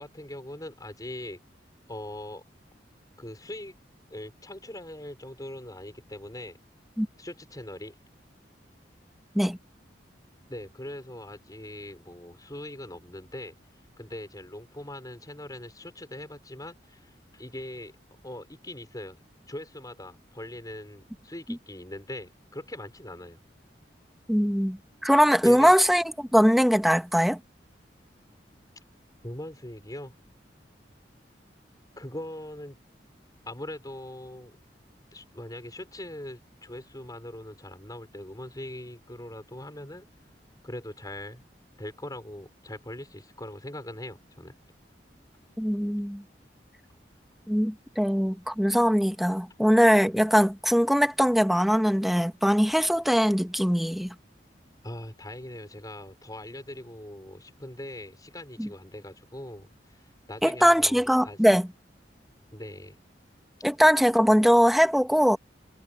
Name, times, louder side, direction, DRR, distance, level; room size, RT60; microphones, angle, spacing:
voice 1, 0.0-1.4 1.9-2.4 3.2-3.7 4.1-6.6 7.2-8.0 10.5-13.5 14.0-17.9 18.2-19.2 19.5-23.4 25.4-25.7 29.2-30.1 32.0-32.8 33.5-34.6 35.1-40.1 40.6-41.4 41.8-44.5 54.8-60.0 60.3-61.4 62.5-63.0, left 1 dB, 20° left, 5.3 m, -41 dB
voice 2, 24.3-27.4 45.6-46.2 47.5-54.1 58.6-58.7 60.4-61.7 63.6-65.4, equal, ahead, 1.4 m, -21 dB
head